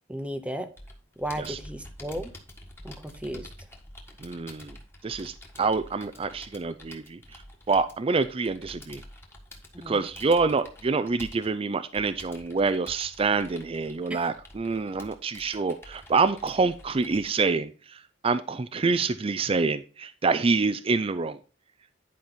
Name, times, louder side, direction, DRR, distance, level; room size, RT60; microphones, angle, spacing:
voice 1, 0.1-0.7 1.2-2.3 2.8-3.5 9.7-10.1 14.1-14.2, equal, 5° right, 0.9 m, -34 dB
Computer keyboard, 0.8-17.3, left 1 dB, 10° left, 1.5 m, -48 dB
voice 2, 4.2-4.8 5.0-7.4 7.7-9.0 9.9-21.4, right 4 dB, 30° right, 0.4 m, -26 dB
10.5 x 5.2 x 4.2 m
head